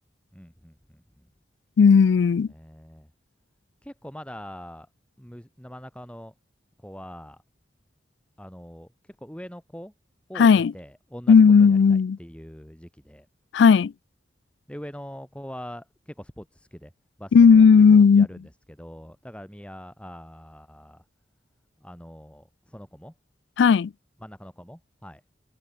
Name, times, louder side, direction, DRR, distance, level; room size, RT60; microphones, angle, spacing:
voice 1, 0.3-1.3 2.5-3.1 3.8-4.9 5.2-6.3 6.8-7.4 8.4-9.9 10.3-13.3 14.7-16.9 17.2-21.0 21.8-23.1 24.2-25.2, equal, 5° left, 2.8 m, -43 dB
voice 2, 1.8-2.5 10.4-10.7 11.3-12.2 13.5-13.9 17.3-18.3 23.6-23.9, left 6 dB, 70° left, 0.3 m, -15 dB
head